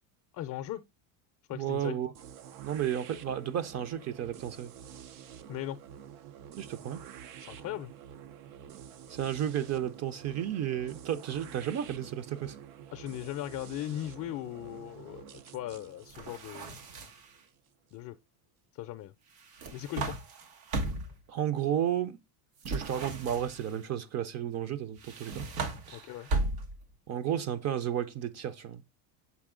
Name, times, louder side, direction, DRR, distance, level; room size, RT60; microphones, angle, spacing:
voice 1, 0.3-0.8 1.5-2.0 5.5-5.8 7.4-7.9 12.9-16.8 17.9-18.2 18.8-19.1 19.7-20.2 25.9-26.3, left 13 dB, 40° left, 0.5 m, -38 dB
voice 2, 1.5-2.1 2.6-4.7 6.6-7.0 9.1-12.6 21.3-22.2 22.7-25.5 25.9-26.0 27.1-28.8, right 10 dB, 35° right, 0.6 m, -33 dB
sound 1, 2.1-18.0, right 9 dB, 70° right, 0.8 m, -49 dB
sound 2, 16.1-17.4 19.4-21.2 22.6-23.8 25.0-26.9, right 2 dB, 85° right, 1.6 m, -36 dB
7.2 x 4.2 x 3.7 m
cardioid pair, 125°, 47 cm